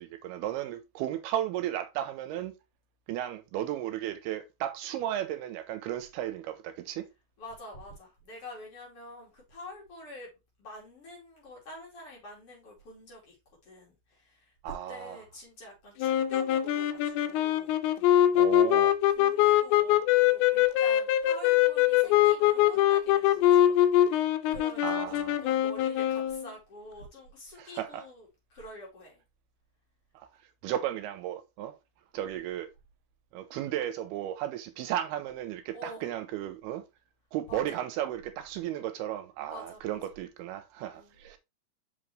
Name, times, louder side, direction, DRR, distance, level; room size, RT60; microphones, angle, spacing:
voice 1, 0.0-2.5 3.1-7.1 14.6-15.2 18.3-19.0 24.8-25.4 27.6-28.0 30.2-30.3 30.6-31.8 32.1-32.7 33.3-36.8 37.3-41.4, right 12 dB, 85° right, 2.5 m, -34 dB
voice 2, 7.4-10.3 10.6-13.4 13.6-18.2 18.5-18.8 19.1-29.2 35.7-36.1 37.5-37.8 39.5-40.0 40.9-41.2, left 1 dB, 40° left, 3.0 m, -47 dB
sound 1, 16.0-26.5, left 12 dB, 85° left, 2.6 m, -23 dB
5.9 x 5.7 x 3.1 m
omnidirectional pair, 4.6 m